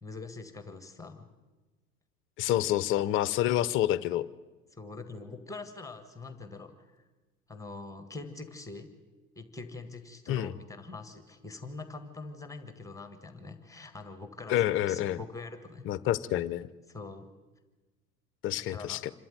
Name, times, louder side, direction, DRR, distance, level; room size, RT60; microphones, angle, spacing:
voice 1, 0.0-1.3 4.7-7.0 7.5-8.9 9.4-15.9 16.9-17.3 18.7-19.0, left 3 dB, 5° left, 8 dB, 1.6 m, -44 dB
voice 2, 2.4-4.3 10.3-10.5 14.5-15.2 15.9-16.7 18.4-19.1, left 13 dB, 25° left, 17 dB, 0.7 m, -28 dB
26.5 x 13.0 x 9.0 m, 1.2 s
figure-of-eight pair, 85°, 47 cm